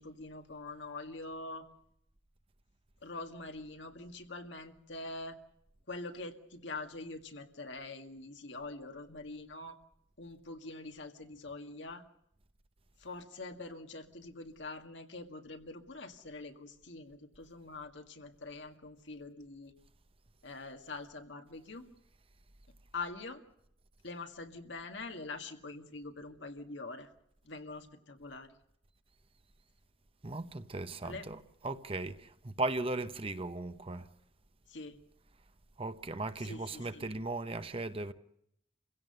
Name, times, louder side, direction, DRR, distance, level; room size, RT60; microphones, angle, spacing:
voice 1, 0.0-1.7 3.0-5.4 5.9-9.8 10.2-12.0 13.0-19.7 20.4-21.9 22.9-23.4 24.0-27.1 27.4-28.5 31.0-31.2 34.7-35.0 36.4-37.1, left 3 dB, 75° left, 2.0 m, -44 dB
voice 2, 30.2-34.1 35.8-38.1, right 2 dB, 30° right, 0.9 m, -37 dB
28.0 x 16.5 x 6.7 m
head